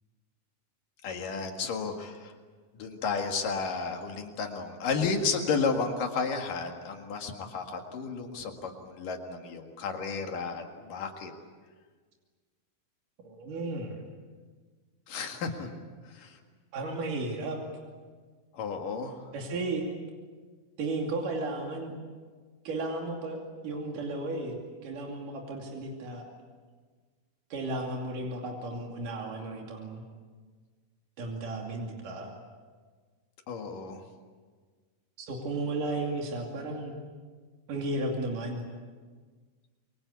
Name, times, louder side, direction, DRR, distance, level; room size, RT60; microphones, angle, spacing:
voice 1, 1.0-2.3 2.8-11.3 15.1-15.7 16.0-16.4 18.5-19.2 33.5-34.0, left 5 dB, 80° left, 4 dB, 3.6 m, -32 dB
voice 2, 13.2-14.0 16.7-17.6 19.3-19.9 20.8-21.9 22.6-23.4 23.6-26.2 27.5-30.0 31.2-32.3 35.2-36.9 37.7-38.6, right 2 dB, 75° right, 0 dB, 4.2 m, -34 dB
27.0 x 24.0 x 8.4 m, 1.5 s
omnidirectional pair, 3.8 m